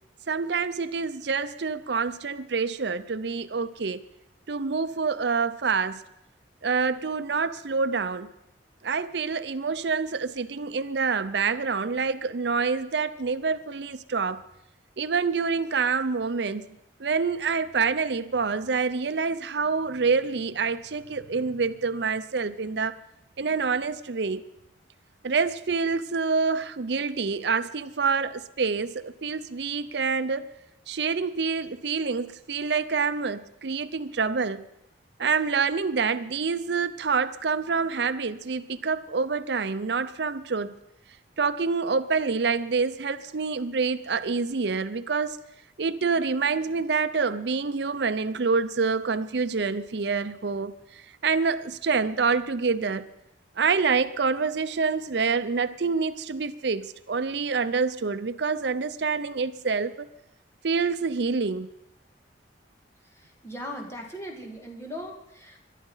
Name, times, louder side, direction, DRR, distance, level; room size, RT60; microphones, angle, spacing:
voice 1, 0.3-4.0 4.5-6.0 6.6-8.3 8.8-14.4 15.0-16.6 17.0-23.0 23.4-24.5 25.2-30.5 30.9-34.6 35.2-40.7 41.4-45.4 45.8-50.7 51.2-53.1 53.6-60.1 60.6-61.7, right 5 dB, 65° right, 0.6 m, -27 dB
voice 2, 63.0-65.6, equal, 15° left, 2.2 m, -39 dB
22.0 x 11.5 x 5.6 m
head